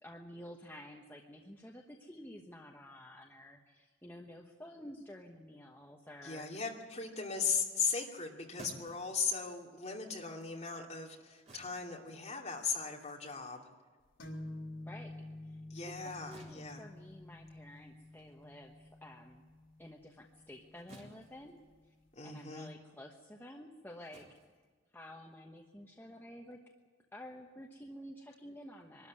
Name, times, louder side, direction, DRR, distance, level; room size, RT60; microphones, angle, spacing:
voice 1, 0.0-6.5 14.8-15.1 15.4-19.4 19.8-21.6 21.8-21.9 22.2-24.3 24.9-26.6 27.1-29.1, left 1 dB, 10° left, 0 dB, 1.1 m, -51 dB
voice 2, 6.2-13.7 15.7-16.8 22.2-22.7, left 5 dB, 35° left, -1 dB, 2.8 m, -38 dB
sound 1, 8.0-14.8 15.2-25.4, right 1 dB, 35° right, 4.0 m, -60 dB
sound 2, 14.2-21.7, left 1 dB, 85° left, 3.7 m, -49 dB
23.5 x 13.0 x 9.8 m, 1.4 s
head